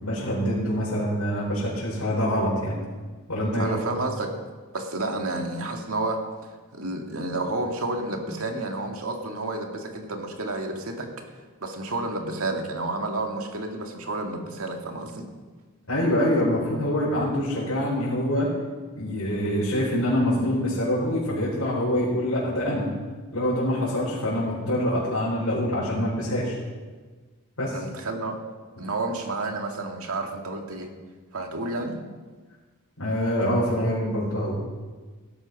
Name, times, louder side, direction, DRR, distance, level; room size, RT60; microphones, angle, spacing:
voice 1, 0.0-2.8 3.3-3.7 15.9-18.5 18.9-22.9 23.3-26.6 27.6-27.8 33.0-34.5, equal, 80° left, -8 dB, 5.1 m, -25 dB
voice 2, 3.5-4.3 4.7-11.1 11.6-15.3 27.7-28.4 28.8-30.9 31.3-32.0, right 2 dB, 70° right, 3 dB, 2.2 m, -30 dB
17.0 x 13.5 x 5.4 m, 1.4 s
head